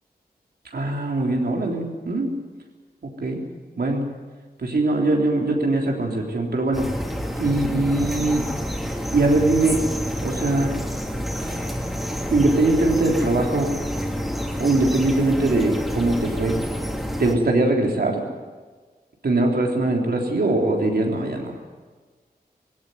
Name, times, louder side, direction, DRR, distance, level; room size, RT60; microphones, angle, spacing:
voice 1, 0.7-2.3 3.0-3.4 3.8-4.1 4.6-6.9 7.4-8.5 9.1-9.8 10.2-10.7 12.3-13.7 14.6-16.6 17.2-18.3 19.2-21.6, right 2 dB, 80° right, 1 dB, 3.6 m, -21 dB
sound 1, 6.7-17.3, equal, ahead, 3.2 m, -28 dB
18.5 x 16.5 x 9.5 m, 1.4 s
wide cardioid pair, 65°, 16 cm